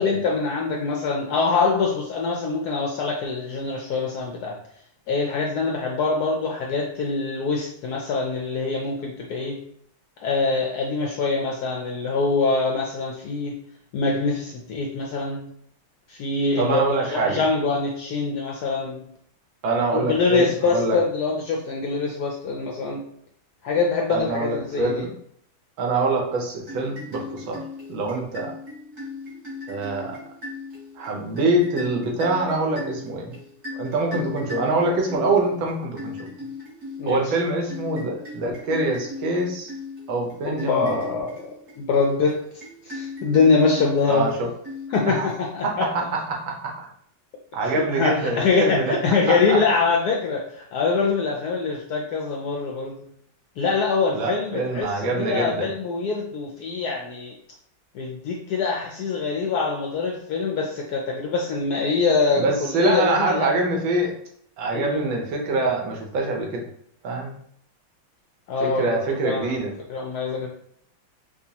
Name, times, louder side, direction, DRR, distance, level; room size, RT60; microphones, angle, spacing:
voice 1, 0.0-4.6 5.1-9.6 10.2-13.6 13.9-15.5 16.1-19.1 19.9-23.0 23.6-25.0 37.0-37.3 40.5-41.5 41.8-42.4 42.8-44.3 44.9-45.9 47.7-53.1 53.6-54.9 55.2-57.3 57.9-63.5 64.7-65.0 68.5-70.5, left 4 dB, 75° left, 0 dB, 0.9 m, -24 dB
voice 2, 16.6-17.4 19.6-21.0 24.1-25.1 25.8-27.6 27.9-28.5 29.7-30.2 31.0-33.4 33.7-36.1 37.0-39.7 40.1-41.1 44.1-44.5 45.1-45.3 45.6-46.9 47.5-49.0 49.3-49.6 54.1-55.7 62.3-64.1 64.6-66.7 67.0-67.3 68.6-69.7, right 2 dB, 80° right, 1 dB, 1.6 m, -25 dB
sound 1, 26.6-45.8, left 3 dB, 45° right, 1.7 m, -38 dB
4.9 x 2.3 x 2.8 m, 0.67 s
omnidirectional pair, 2.2 m